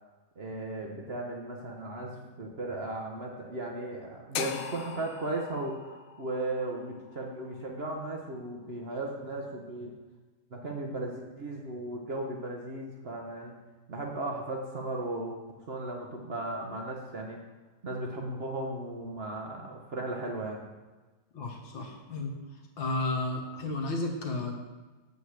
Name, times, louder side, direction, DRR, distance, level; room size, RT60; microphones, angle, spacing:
voice 1, 0.4-9.9 10.5-13.5 13.9-17.4 17.8-20.7, right 2 dB, 50° right, 0 dB, 0.8 m, -36 dB
sound 1, 4.3-8.5, left 9 dB, 90° left, 1.4 m, -41 dB
voice 2, 21.3-22.3 22.8-24.5, left 2 dB, 75° left, 0 dB, 2.1 m, -32 dB
7.8 x 5.3 x 6.5 m, 1.2 s
omnidirectional pair, 2.2 m